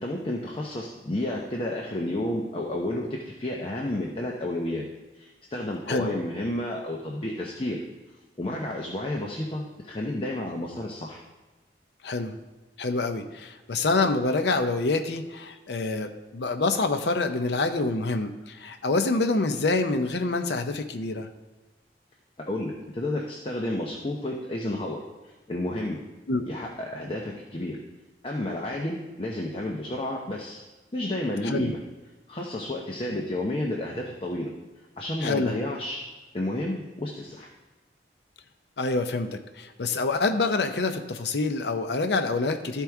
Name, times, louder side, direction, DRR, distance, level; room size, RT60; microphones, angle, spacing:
voice 1, 0.0-4.9 5.1-7.8 8.4-11.2 22.4-26.0 26.5-27.8 28.2-30.6 30.9-31.8 32.3-34.5 35.0-36.0 36.3-37.5, left 1 dB, 30° left, -1 dB, 0.7 m, -31 dB
voice 2, 12.0-12.4 12.8-21.3 26.3-26.4 31.4-31.7 35.2-35.6 38.8-42.8, left 3 dB, 70° left, 7 dB, 0.6 m, -26 dB
13.0 x 4.6 x 3.5 m, 1.2 s
head